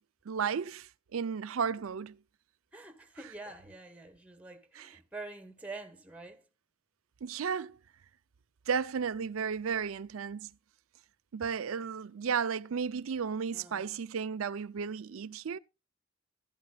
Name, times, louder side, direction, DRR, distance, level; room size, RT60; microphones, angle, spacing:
voice 1, 0.3-2.2 4.7-5.0 7.2-7.8 8.7-10.5 11.3-15.6, right 6 dB, 75° right, 0.5 m, -34 dB
voice 2, 2.7-6.4 13.5-13.8, right 3 dB, 5° right, 1.4 m, -46 dB
14.5 x 12.5 x 2.3 m
head